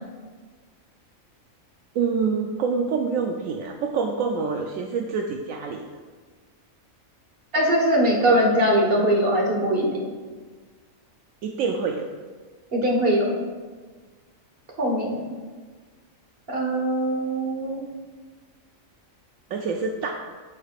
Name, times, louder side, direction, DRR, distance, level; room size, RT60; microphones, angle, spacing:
voice 1, 1.9-5.9 11.4-12.1 19.5-20.1, right 5 dB, 80° right, 3 dB, 1.0 m, -26 dB
voice 2, 7.5-9.9 12.7-13.2 14.8-15.2 16.5-17.8, right 1 dB, 45° right, -1 dB, 1.5 m, -21 dB
14.0 x 5.1 x 2.4 m, 1.4 s
omnidirectional pair, 1.4 m